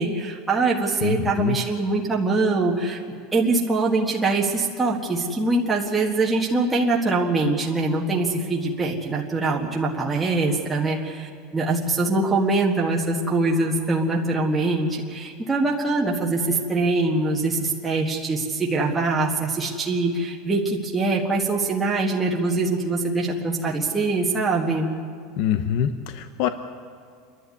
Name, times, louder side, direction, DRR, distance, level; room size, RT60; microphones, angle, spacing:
voice 1, 0.0-3.0 3.3-24.9, right 3 dB, 10° right, -3 dB, 1.5 m, -23 dB
voice 2, 1.0-1.6 25.4-26.5, left 9 dB, 55° left, 10 dB, 0.9 m, -24 dB
28.0 x 11.0 x 9.7 m, 2.1 s
supercardioid pair, 160°, 0 cm